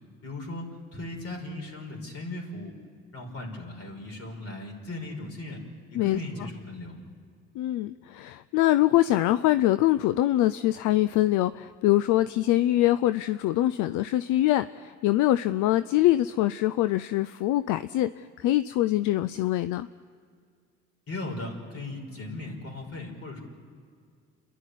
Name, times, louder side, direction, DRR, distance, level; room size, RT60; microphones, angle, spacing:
voice 1, 0.2-0.7 0.9-2.7 3.1-5.6 5.9-7.0 21.1-23.4, left 2 dB, 50° left, 1 dB, 5.6 m, -37 dB
voice 2, 7.6-19.9, left 15 dB, 80° left, 14 dB, 0.5 m, -24 dB
29.5 x 11.5 x 10.0 m, 2.1 s
supercardioid pair, 60°, 30 cm